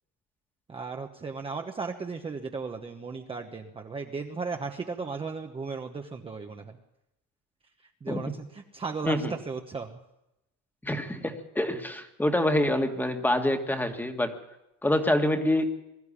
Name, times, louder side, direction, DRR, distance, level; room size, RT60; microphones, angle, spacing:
voice 1, 0.7-6.8 8.0-9.9, right 4 dB, 20° right, 3 dB, 1.1 m, -36 dB
voice 2, 10.8-14.3 14.8-15.7, left 1 dB, 5° left, 6 dB, 1.8 m, -26 dB
22.0 x 13.0 x 10.0 m, 0.89 s
cardioid pair, 155°, 31 cm